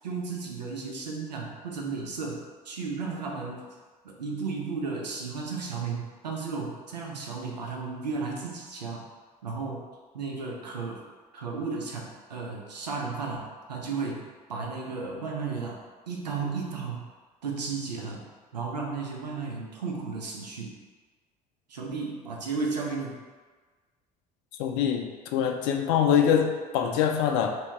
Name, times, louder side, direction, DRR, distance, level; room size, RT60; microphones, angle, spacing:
voice 1, 0.0-3.7 4.0-9.1 9.4-9.9 10.1-11.0 11.3-17.1 17.4-18.2 18.5-20.8 21.7-23.2, right 4 dB, 90° right, -1 dB, 0.6 m, -34 dB
voice 2, 24.6-27.6, left 8 dB, 60° left, 4 dB, 0.4 m, -24 dB
2.8 x 2.8 x 3.4 m, 1.4 s
hypercardioid pair, 60°, 21 cm